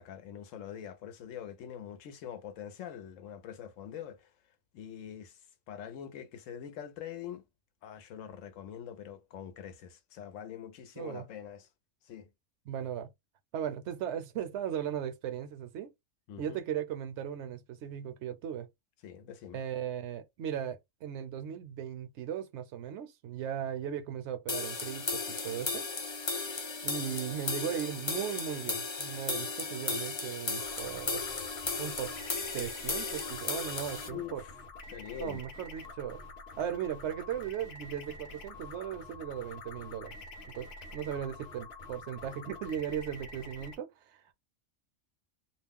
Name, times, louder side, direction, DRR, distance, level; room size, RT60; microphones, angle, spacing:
voice 1, 0.0-4.3 4.7-5.4 5.7-7.4 7.8-11.7 12.0-12.3 16.3-16.6 19.0-19.6 34.0-34.5 34.9-35.4, left 9 dB, 90° left, 1.0 m, -44 dB
voice 2, 11.0-11.3 12.7-13.1 13.5-15.9 16.4-18.7 19.5-25.9 26.8-31.3 31.8-32.1 32.5-34.4 35.2-36.2 36.6-40.2 40.5-44.3, right 9 dB, 70° right, 0.8 m, -37 dB
sound 1, 24.5-34.1, left 4 dB, 45° left, 0.3 m, -35 dB
sound 2, 30.6-43.7, left 3 dB, 60° left, 0.8 m, -47 dB
2.4 x 2.0 x 3.4 m
omnidirectional pair, 1.3 m